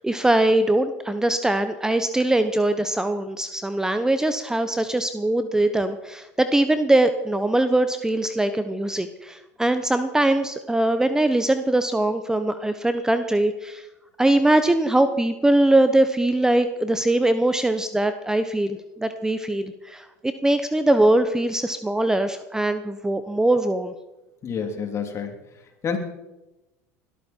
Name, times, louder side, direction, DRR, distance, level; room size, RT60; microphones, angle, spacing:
voice 1, 0.0-13.8 14.2-23.9, right 1 dB, 5° right, 10 dB, 0.9 m, -22 dB
voice 2, 24.4-25.3 25.8-26.0, left 6 dB, 35° left, 4 dB, 3.2 m, -28 dB
20.5 x 13.0 x 4.5 m, 1.0 s
hypercardioid pair, 95°, 8 cm